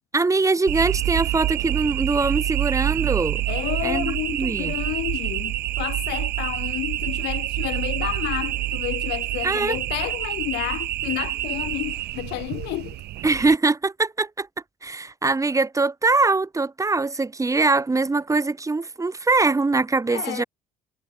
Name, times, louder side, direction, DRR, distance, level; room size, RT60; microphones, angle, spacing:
voice 1, 0.1-3.4 3.8-4.7 9.4-9.8 13.2-14.5 14.8-20.4, right 3 dB, 20° right, 6.9 m, -22 dB
sound 1, 0.7-13.6, right 15 dB, 75° right, 4.2 m, -27 dB
voice 2, 3.5-13.0 20.1-20.5, left 20 dB, 90° left, 7.9 m, -30 dB
cardioid pair, 110°, 17 cm